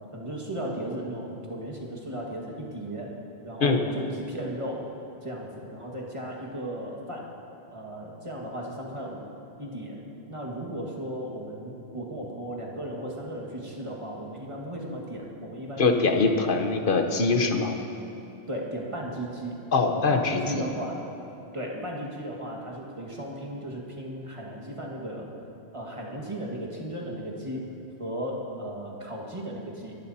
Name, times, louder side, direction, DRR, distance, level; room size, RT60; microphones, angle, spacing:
voice 1, 0.1-3.1 3.4-4.9 5.2-7.3 7.7-9.2 9.6-10.0 10.3-16.4 18.5-19.5 19.9-21.0 21.5-25.3 25.7-27.6 28.0-30.0, right 1 dB, 30° right, -2 dB, 1.9 m, -35 dB
voice 2, 15.8-17.8 19.7-20.7, left 4 dB, 55° left, 5 dB, 1.1 m, -23 dB
23.0 x 12.0 x 2.8 m, 2.9 s
omnidirectional pair, 1.1 m